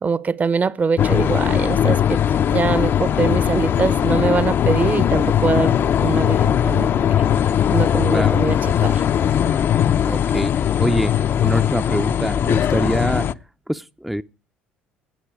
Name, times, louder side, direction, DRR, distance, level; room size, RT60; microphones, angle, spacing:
voice 1, 0.0-6.9 7.7-9.0, right 5 dB, 35° right, 0.9 m, -23 dB
sound 1, 1.0-13.3, left 9 dB, 50° left, 0.6 m, -19 dB
voice 2, 10.1-11.1 11.4-13.3 13.7-14.2, equal, 5° right, 0.6 m, -24 dB
17.0 x 9.4 x 4.8 m
hypercardioid pair, 55°, 5 cm